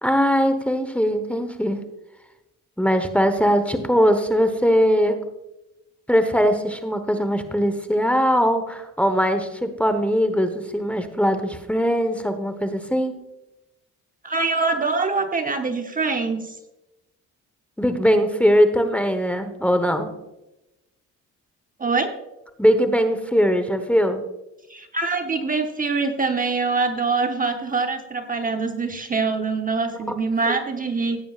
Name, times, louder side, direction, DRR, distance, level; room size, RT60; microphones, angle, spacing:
voice 1, 0.0-1.8 2.8-5.2 6.1-13.1 17.8-20.1 22.6-24.2 30.5-30.6, equal, 5° left, 8 dB, 1.1 m, -20 dB
voice 2, 14.2-16.6 21.8-22.1 24.7-31.2, right 4 dB, 25° right, 6 dB, 0.9 m, -24 dB
16.0 x 9.0 x 2.4 m, 0.96 s
cardioid pair, 90°, 30 cm